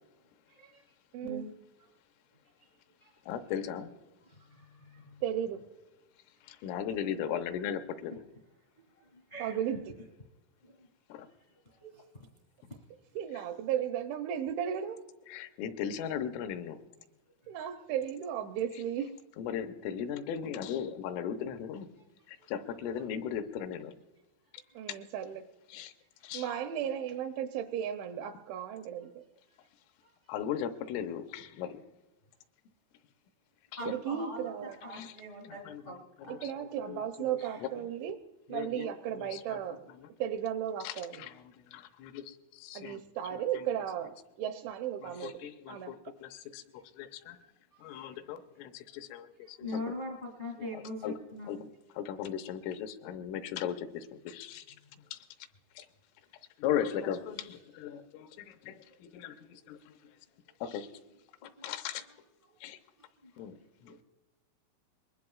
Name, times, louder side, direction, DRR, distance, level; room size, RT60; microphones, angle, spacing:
voice 1, 0.5-0.8 1.2-1.5 2.6-2.7 3.0-3.1 4.2-5.2 6.4-6.7 8.1-8.2 8.8-9.6 10.6-10.8 11.5-12.3 17.4-17.5 24.7-24.8 30.0-30.1 33.8-36.3 37.4-37.6 46.3-46.4 47.7-48.2 48.9-49.0 49.4-51.7 54.9-55.0 58.3-58.4 58.8-59.0 61.4-61.7 62.4-62.5 63.0-63.4 63.8-64.0, left 1 dB, 65° left, 0 dB, 0.5 m, -44 dB
voice 2, 1.1-1.4 5.2-5.7 9.4-9.8 13.2-15.0 17.5-19.2 24.8-25.5 26.3-29.2 33.8-34.8 36.3-39.9 40.2-41.3 42.7-45.3 45.7-46.0, right 9 dB, 80° right, 7 dB, 2.8 m, -35 dB
voice 3, 3.3-3.9 6.5-8.1 11.1-11.3 15.3-16.8 19.4-21.9 22.5-23.9 25.7-25.9 26.2-26.5 30.3-31.8 34.9-35.1 35.7-35.8 36.9-37.0 37.3-37.4 38.5-38.9 39.2-39.6 40.8-41.3 41.7-43.0 43.5-43.7 45.0-47.4 47.8-49.6 51.0-51.1 51.5-51.6 52.0-54.6 55.1-55.2 55.8-55.9 56.6-58.8 59.0-59.8 60.6-60.9 61.4-62.0 62.6-62.8 63.4-63.6 63.8-64.0, left 9 dB, 85° left, 8 dB, 3.3 m, -37 dB
23.5 x 21.0 x 2.4 m, 1.0 s
omnidirectional pair, 5.7 m